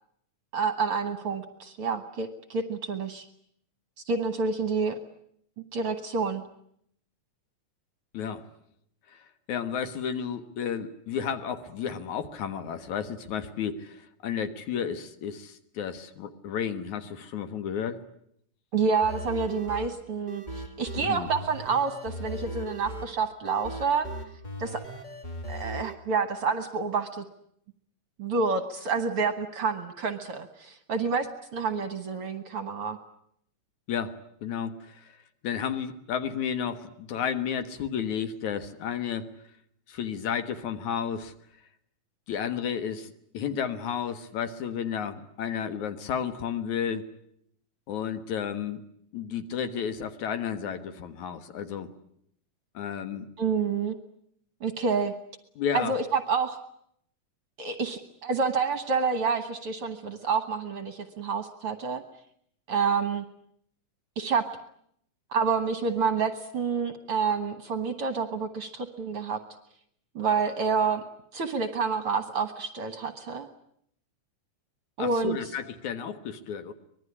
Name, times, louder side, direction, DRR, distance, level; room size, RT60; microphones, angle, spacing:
voice 1, 0.5-3.3 4.1-5.0 5.7-6.4 18.7-24.1 24.6-24.8 25.5-27.2 28.2-33.0 53.4-53.9 54.6-55.1 55.7-56.6 57.6-62.0 62.7-63.2 64.2-64.4 65.3-69.4 70.1-71.0 71.3-73.5 75.0-75.4, right 5 dB, 55° right, 9 dB, 1.8 m, -28 dB
voice 2, 8.1-8.4 9.1-9.2 9.5-18.0 21.0-21.3 33.9-34.2 34.4-35.1 35.4-39.3 39.9-41.3 42.3-47.1 47.9-48.8 49.1-51.9 52.7-53.2 55.6-55.9 75.0-76.7, left 8 dB, 65° left, 9 dB, 2.7 m, -32 dB
sound 1, 19.0-25.9, right 1 dB, 25° left, 1.0 m, -38 dB
25.0 x 21.0 x 9.8 m, 0.71 s
omnidirectional pair, 3.8 m